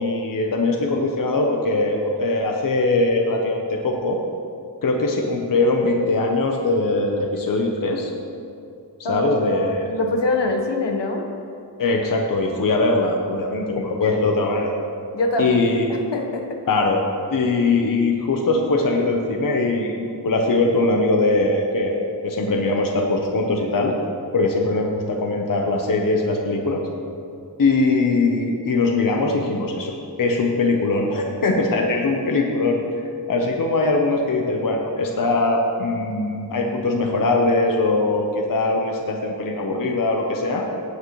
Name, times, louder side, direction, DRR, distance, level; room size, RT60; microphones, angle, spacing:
voice 1, 0.0-4.2 4.8-8.1 9.1-9.9 11.8-14.7 15.4-15.9 16.7-17.0 17.3-19.9 20.2-23.9 24.3-26.9 27.6-29.9 30.2-32.8 33.3-40.7, left 2 dB, 50° left, 1 dB, 0.9 m, -21 dB
voice 2, 9.0-11.2 14.0-14.3 15.1-15.7 16.1-16.5, left 2 dB, 75° left, 2 dB, 1.3 m, -24 dB
15.5 x 9.4 x 3.2 m, 2.5 s
wide cardioid pair, 170°, 43 cm